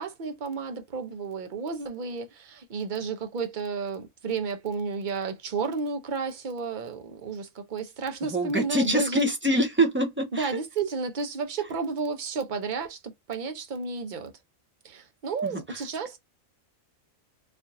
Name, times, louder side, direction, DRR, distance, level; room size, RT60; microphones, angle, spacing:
voice 1, 0.0-9.2 10.3-13.0 13.3-14.3 14.8-16.2, right 4 dB, 45° right, 0.8 m, -32 dB
voice 2, 8.3-10.6 15.4-15.6, right 1 dB, 20° right, 0.3 m, -25 dB
4.3 x 2.5 x 2.5 m
omnidirectional pair, 1.4 m